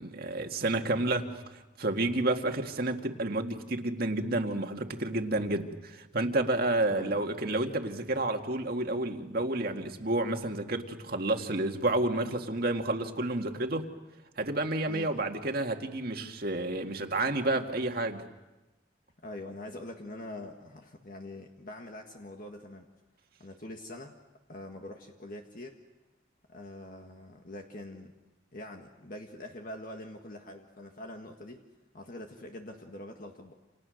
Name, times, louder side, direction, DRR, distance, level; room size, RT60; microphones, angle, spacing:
voice 1, 0.0-13.9 14.4-18.2, right 2 dB, 50° right, 4 dB, 1.9 m, -30 dB
voice 2, 6.9-7.3 14.9-15.2 19.2-22.9 23.4-24.1 24.5-25.8 26.5-28.1 28.5-31.6 31.9-33.5, left 1 dB, 45° left, 3 dB, 1.7 m, -44 dB
29.0 x 28.5 x 6.5 m, 1.1 s
head